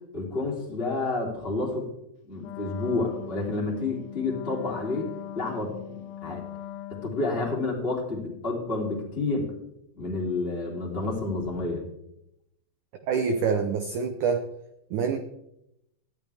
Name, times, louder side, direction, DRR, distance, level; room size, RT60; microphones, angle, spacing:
voice 1, 0.1-1.9 2.2-5.1 5.3-6.4 6.9-9.5 9.9-11.8, left 3 dB, 15° left, -3 dB, 2.7 m, -29 dB
Wind instrument woodwind instrument, 2.4-7.5, left 13 dB, 80° left, 1.9 m, -40 dB
voice 2, 13.1-14.4 14.9-15.2, right 5 dB, 80° right, 6 dB, 1.8 m, -26 dB
19.0 x 13.0 x 3.5 m, 0.82 s
omnidirectional pair, 4.9 m